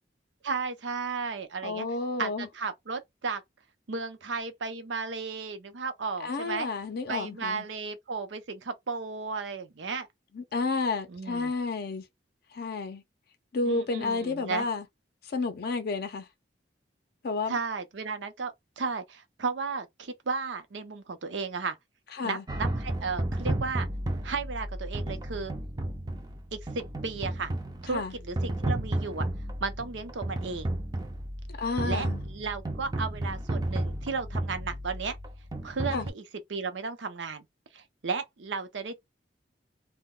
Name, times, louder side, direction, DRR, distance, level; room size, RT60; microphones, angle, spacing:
voice 1, 0.4-1.9 2.2-3.4 3.9-6.7 7.1-10.1 11.1-11.5 13.6-14.6 17.5-21.8 22.2-23.9 24.2-25.5 26.5-27.5 27.8-29.3 29.6-30.7 31.8-35.2 35.6-36.2 36.5-37.4 37.7-39.0, right 4 dB, 75° right, 0.6 m, -34 dB
voice 2, 1.6-2.5 6.2-7.7 10.3-12.1 12.5-13.0 13.5-14.9 15.2-16.3 17.2-17.6 22.1-22.4 27.9-28.1 31.6-32.2 35.9-36.1, left 3 dB, 55° left, 0.5 m, -31 dB
sound 1, 22.5-36.1, right 1 dB, 20° right, 0.4 m, -33 dB
2.2 x 2.1 x 3.6 m
head